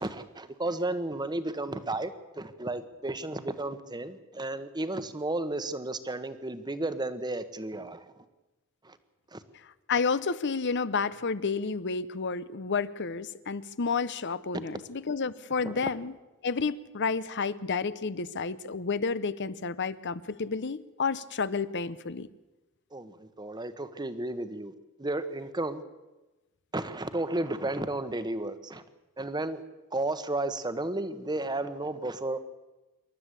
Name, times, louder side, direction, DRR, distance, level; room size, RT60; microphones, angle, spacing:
voice 1, 0.0-8.0 8.8-9.0 9.3-9.4 14.5-14.6 15.6-15.7 22.9-24.7 25.0-25.8 26.7-28.8 29.2-29.6 29.9-32.4, right 2 dB, 20° right, 10 dB, 1.3 m, -33 dB
voice 2, 9.9-16.1 16.4-22.3, left 4 dB, 55° left, 16 dB, 0.8 m, -30 dB
27.5 x 12.0 x 8.3 m, 1.1 s
head